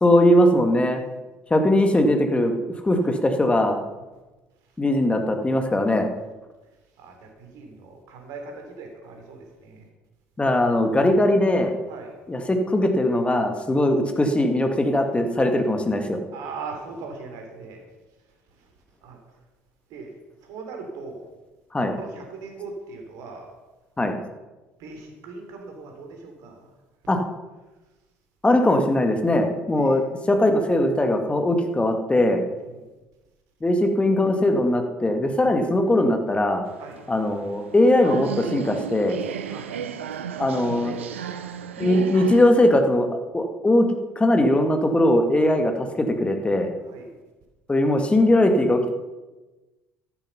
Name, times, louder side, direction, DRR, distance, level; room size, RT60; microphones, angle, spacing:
voice 1, 0.0-1.0 1.5-3.8 4.8-6.1 10.4-11.8 12.3-16.2 21.7-21.9 24.0-24.2 27.1-27.2 28.4-32.5 33.6-36.6 37.1-39.2 40.4-41.0 41.8-43.1 43.3-43.9 44.2-46.7 47.7-48.9, left 1 dB, 15° left, 5 dB, 1.9 m, -20 dB
voice 2, 7.0-9.9 11.9-12.1 13.8-13.9 16.3-17.8 18.5-18.7 19.0-19.4 19.9-20.2 20.4-21.3 22.0-23.5 24.8-26.7 29.8-30.0 32.5-32.9 36.8-37.0 39.4-40.2 40.7-40.8 41.3-41.4 46.8-47.2, right 4 dB, 60° right, 3 dB, 3.3 m, -40 dB
sound 1, 36.6-42.5, right 8 dB, 75° right, 0.8 m, -34 dB
14.0 x 11.5 x 5.6 m, 1.1 s
figure-of-eight pair, 55°, 7 cm